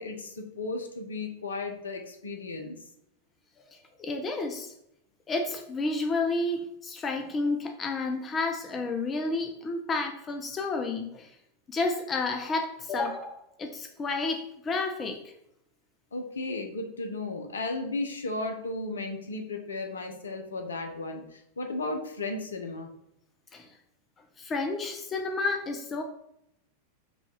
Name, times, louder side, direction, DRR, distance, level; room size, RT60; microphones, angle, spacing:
voice 1, 0.0-2.8 16.1-22.9, left 2 dB, 70° left, 4 dB, 0.6 m, -35 dB
voice 2, 3.7-4.7 5.3-11.3 11.7-15.3 23.5-23.7 24.4-26.0, left 3 dB, 20° left, 4 dB, 0.4 m, -31 dB
4.9 x 2.3 x 3.2 m, 0.77 s
figure-of-eight pair, 90°, 0 cm